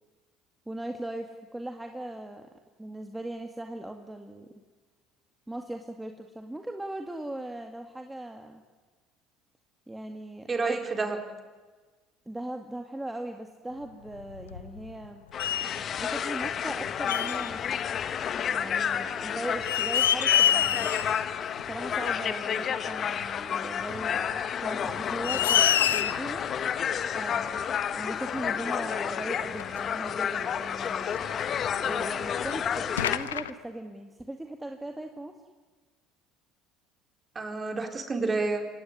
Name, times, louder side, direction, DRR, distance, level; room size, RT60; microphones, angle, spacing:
voice 1, 0.7-2.5 2.8-4.5 5.5-8.6 9.9-10.7 12.3-15.2 16.0-17.8 18.5-21.1 21.7-26.4 27.1-31.1 31.8-35.3, right 1 dB, 10° right, 4 dB, 2.1 m, -39 dB
voice 2, 10.5-11.2 37.3-38.7, right 3 dB, 30° right, 5 dB, 4.2 m, -29 dB
sound 1, 14.1-15.1 15.4-15.8 17.1-17.5 18.9-19.0 19.5-21.3 21.6-21.7 23.2-23.3 24.3-24.4 24.9-25.0 25.2-26.3 27.6-27.7 28.5-28.6 28.8-28.9 29.6-29.8 31.1-32.1 32.5-32.6 33.0-33.5, left 10 dB, 85° left, 0.8 m, -26 dB
sound 2, 15.3-33.2, left 8 dB, 45° left, 1.3 m, -31 dB
26.0 x 18.0 x 9.8 m, 1.3 s
hypercardioid pair, 65°, 0 cm